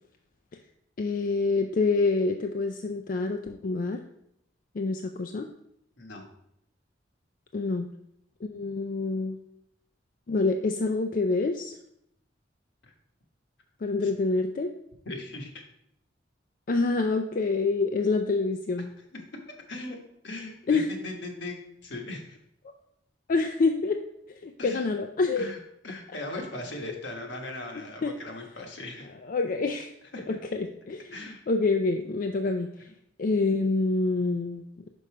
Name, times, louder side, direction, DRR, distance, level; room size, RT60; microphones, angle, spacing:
voice 1, 1.0-4.0 4.7-5.5 7.5-7.9 8.4-9.4 10.3-11.8 13.8-14.7 16.7-18.9 20.7-20.9 22.6-22.7 23.3-24.0 24.3-25.5 28.0-28.1 29.2-29.9 30.3-32.7 33.2-34.6, left 3 dB, 50° left, 5 dB, 0.4 m, -27 dB
voice 2, 6.0-6.3 12.8-12.9 14.0-14.1 15.0-15.6 19.1-19.2 19.5-22.4 24.6-24.9 25.3-25.6 25.8-29.1 30.1-30.4 31.1-31.4, left 2 dB, 75° left, 2 dB, 1.3 m, -39 dB
5.5 x 5.3 x 4.8 m, 0.75 s
head